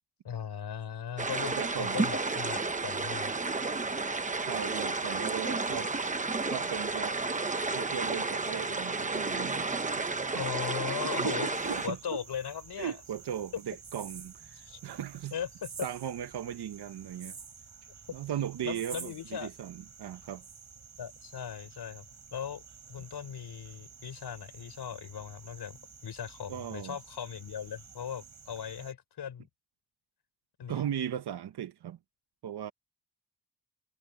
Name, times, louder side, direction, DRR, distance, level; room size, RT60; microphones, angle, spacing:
voice 1, 0.2-3.3 10.3-11.5 11.8-13.0 14.6-14.8 15.3-15.7 18.6-19.5 21.0-22.0 22.3-22.6 22.9-29.5 30.6-30.9, left 8 dB, 80° left, 4.9 m, -38 dB
sound 1, 1.2-11.9, right 3 dB, 20° right, 1.0 m, -32 dB
voice 2, 1.6-2.1 4.4-5.9 6.5-7.2 7.7-9.7 10.0-10.1 10.3-10.4 11.0-12.2 12.8-14.6 14.8-15.3 15.8-17.3 18.1-20.4 26.5-27.0 30.7-32.0 32.4-32.7, right 10 dB, 80° right, 1.0 m, -37 dB
sound 2, 11.5-28.9, right 6 dB, 45° right, 7.1 m, -50 dB
wide cardioid pair, 165°, 39 cm